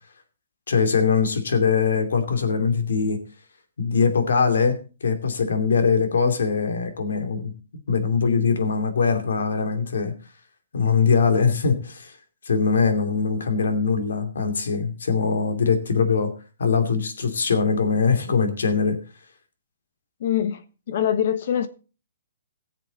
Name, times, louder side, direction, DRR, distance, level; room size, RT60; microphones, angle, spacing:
voice 1, 0.7-3.2 3.8-7.5 7.9-10.1 10.7-12.2 12.4-16.3 16.6-19.0, left 5 dB, 90° left, 2.6 m, -22 dB
voice 2, 20.2-21.7, left 9 dB, 50° left, 1.1 m, -24 dB
18.5 x 7.4 x 3.9 m
hypercardioid pair, 170°, 0 cm